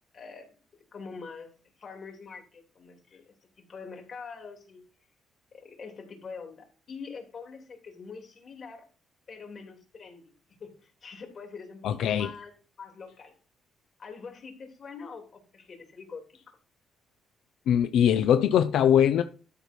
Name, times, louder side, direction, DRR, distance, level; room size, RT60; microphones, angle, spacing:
voice 1, 0.1-0.5 0.9-1.5 1.8-3.3 3.6-4.8 5.5-8.9 9.3-10.2 10.6-13.4 14.0-16.6, left 5 dB, 50° left, 3.3 m, -44 dB
voice 2, 11.8-12.3 17.7-19.2, left 9 dB, 80° left, 0.5 m, -22 dB
12.5 x 5.3 x 4.6 m
cardioid pair, 90°, 0 cm